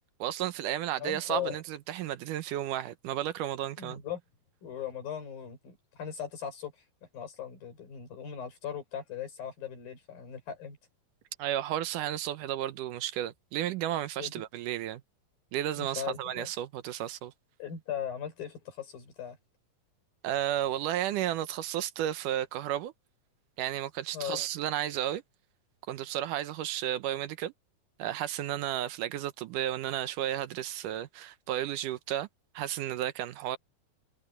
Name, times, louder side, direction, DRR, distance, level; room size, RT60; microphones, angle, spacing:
voice 1, 0.2-4.0 11.4-15.0 15.5-17.3 20.2-22.9 23.6-25.2 25.9-27.5 28.0-32.3 32.5-33.6, right 12 dB, 75° right, 2.3 m, -33 dB
voice 2, 1.0-1.6 3.8-4.2 4.6-6.8 7.1-10.8 14.2-14.3 15.8-16.5 17.6-19.4 24.1-24.4, left 9 dB, 90° left, 6.8 m, -38 dB
omnidirectional pair, 4.0 m